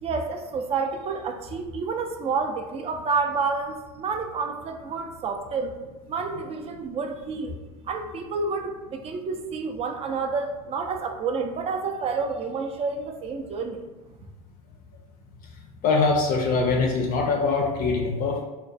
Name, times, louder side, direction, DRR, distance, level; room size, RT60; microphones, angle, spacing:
voice 1, 0.0-5.8 6.1-7.5 7.8-13.8, right 4 dB, 30° right, 5 dB, 0.4 m, -29 dB
voice 2, 15.8-18.4, left 4 dB, 45° left, 0 dB, 0.4 m, -23 dB
2.3 x 2.2 x 2.5 m, 1.2 s
hypercardioid pair, 80°, 20 cm